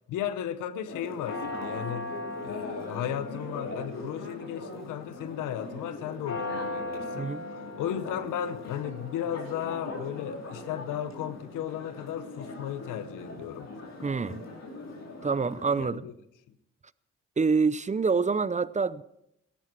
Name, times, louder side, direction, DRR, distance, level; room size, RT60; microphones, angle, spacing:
voice 1, 0.0-2.1 2.4-7.3 7.8-13.7 15.8-16.1, left 10 dB, 85° left, 0.9 m, -35 dB
Church bell, 0.8-15.8, left 2 dB, 55° left, 4.0 m, -39 dB
voice 2, 7.1-7.4 14.0-14.4 15.2-16.1 17.4-19.0, right 4 dB, 25° right, 0.6 m, -26 dB
17.0 x 13.0 x 4.6 m
supercardioid pair, 50°, 31 cm